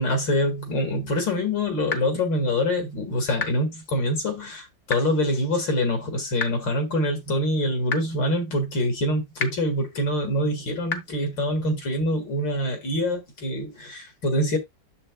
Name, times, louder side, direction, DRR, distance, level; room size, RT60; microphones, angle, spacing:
voice 1, 0.0-14.6, left 1 dB, 80° left, 2.6 m, -25 dB
sound 1, 1.9-2.0 3.4-3.5 4.9-5.0 6.4-6.5 7.9-8.0 9.4-9.5 10.9-11.0, left 5 dB, 45° left, 0.9 m, -27 dB
8.8 x 7.2 x 2.2 m
omnidirectional pair, 2.0 m